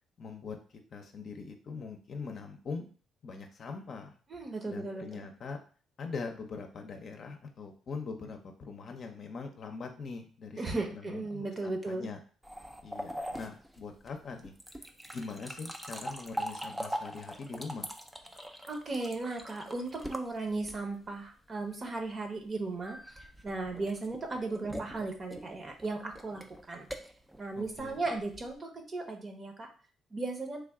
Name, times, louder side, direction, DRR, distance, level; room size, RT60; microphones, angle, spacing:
voice 1, 0.2-0.6 0.9-2.9 3.2-4.1 4.7-5.6 6.0-12.2 12.8-14.5 15.1-17.9 27.6-28.0, left 4 dB, 55° left, 4 dB, 0.6 m, -42 dB
voice 2, 4.3-5.3 10.6-12.1 18.7-23.0 23.4-26.9 27.4-29.7 30.1-30.6, right 3 dB, 35° right, 3 dB, 0.8 m, -36 dB
sound 1, 12.4-21.1 22.8-28.6, equal, 5° right, 0.4 m, -42 dB
3.4 x 2.3 x 3.6 m, 0.40 s
cardioid pair, 90°, 0 cm